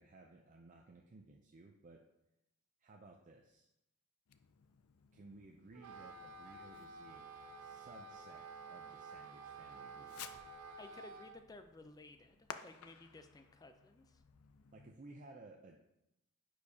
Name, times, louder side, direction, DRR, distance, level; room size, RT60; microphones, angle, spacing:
voice 1, 0.0-2.0 2.8-3.7 5.1-7.3 7.6-10.2 14.7-15.8, right 2 dB, 35° right, 1 dB, 0.5 m, -58 dB
Fireworks, 4.3-15.0, left 8 dB, 80° left, 0.4 m, -57 dB
Wind instrument woodwind instrument, 5.7-11.4, right 3 dB, 90° right, 0.6 m, -51 dB
voice 2, 10.8-14.2, left 2 dB, 15° left, 8 dB, 0.5 m, -56 dB
9.7 x 4.5 x 2.8 m, 0.87 s
head